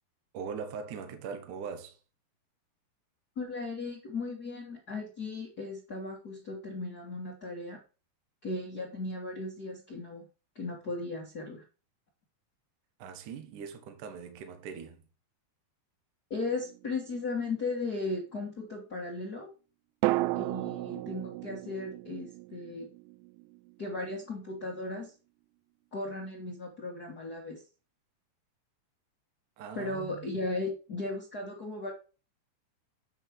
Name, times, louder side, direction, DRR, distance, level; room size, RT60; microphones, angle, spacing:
voice 1, 0.3-2.0 13.0-15.0 29.6-30.3, right 6 dB, 65° right, 2.3 m, -41 dB
voice 2, 3.3-7.8 8.4-10.2 10.5-11.6 16.3-19.5 20.3-22.9 23.8-25.1 25.9-27.6 29.7-31.9, left 3 dB, 75° left, 0.8 m, -36 dB
sound 1, 16.4-17.6 20.0-24.0 24.2-24.3, right 18 dB, 90° right, 2.8 m, -35 dB
8.9 x 4.7 x 6.0 m
omnidirectional pair, 5.0 m